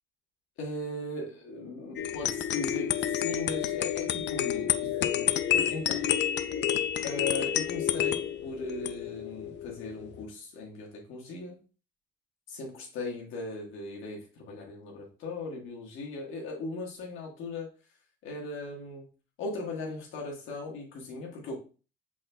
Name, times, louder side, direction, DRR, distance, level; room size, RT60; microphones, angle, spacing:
voice 1, 0.6-5.3 5.7-6.1 7.0-11.6 12.5-17.7 18.2-19.1 19.4-21.5, left 3 dB, 90° left, -1 dB, 1.4 m, -38 dB
sound 1, 2.0-10.3, left 10 dB, 65° left, 0.4 m, -29 dB
6.1 x 3.5 x 2.2 m, 0.36 s
cardioid pair, 90°, 20 cm